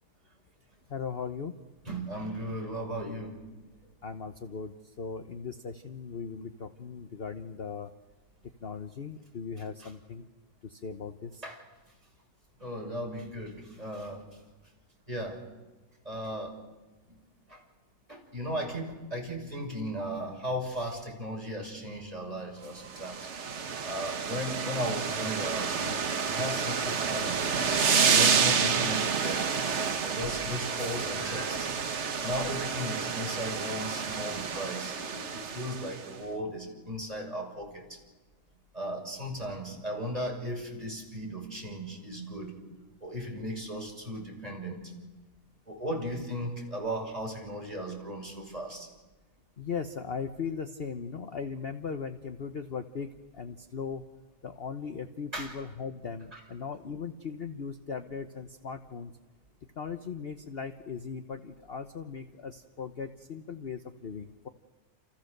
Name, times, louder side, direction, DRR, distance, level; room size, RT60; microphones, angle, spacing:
voice 1, 0.9-1.5 4.0-7.9 8.6-10.3 10.6-11.4 49.6-53.1 53.3-54.0 54.4-59.1 59.8-64.5, left 6 dB, 45° left, 7 dB, 1.1 m, -38 dB
voice 2, 1.8-3.4 9.8-9.9 11.4-11.6 11.9-12.0 12.6-14.2 15.1-15.4 16.0-16.6 17.1-17.2 17.5-17.6 18.1-23.3 23.8-27.6 28.1-29.4 30.0-31.7 32.2-38.0 38.7-42.5 43.0-44.9 45.7-48.9 55.3-55.5 56.3-56.4, equal, 20° right, 0 dB, 6.4 m, -36 dB
sound 1, 22.8-36.1, right 6 dB, 50° right, 1.3 m, -29 dB
30.0 x 28.5 x 6.7 m, 1.2 s
omnidirectional pair, 1.7 m